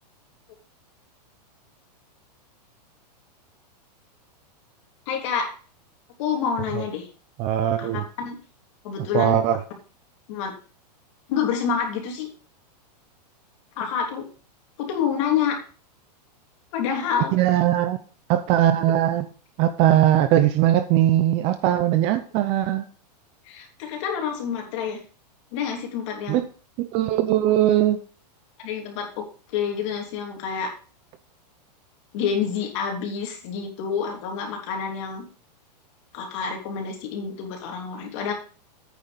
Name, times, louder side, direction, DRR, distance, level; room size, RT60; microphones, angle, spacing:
voice 1, 5.1-5.5 6.2-7.1 7.8-7.9 8.2-8.4 8.8-9.4 10.3-10.5 11.3-12.3 13.8-14.2 14.8-15.6 16.7-17.3 23.4-25.0 25.5-26.4 28.6-30.7 32.1-35.2 36.1-38.3, left 7 dB, 45° left, 1 dB, 3.3 m, -28 dB
voice 2, 7.4-8.0 9.1-9.6 17.3-18.0 18.3-19.2 19.6-22.8 26.3-26.4 26.8-28.0, right 12 dB, 30° right, 11 dB, 0.6 m, -20 dB
9.2 x 6.8 x 5.2 m, 0.38 s
supercardioid pair, 160°, 21 cm